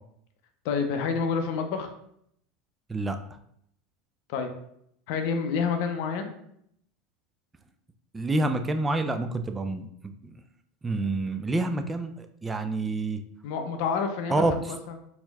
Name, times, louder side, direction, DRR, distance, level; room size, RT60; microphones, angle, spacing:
voice 1, 0.6-1.9 4.3-4.5 5.1-6.3 13.4-15.0, left 5 dB, 65° left, 6 dB, 0.5 m, -28 dB
voice 2, 8.1-10.3 10.8-13.2 14.3-14.5, right 2 dB, 15° right, 8 dB, 0.4 m, -28 dB
4.3 x 2.8 x 2.3 m, 0.72 s
hypercardioid pair, 85°, 0 cm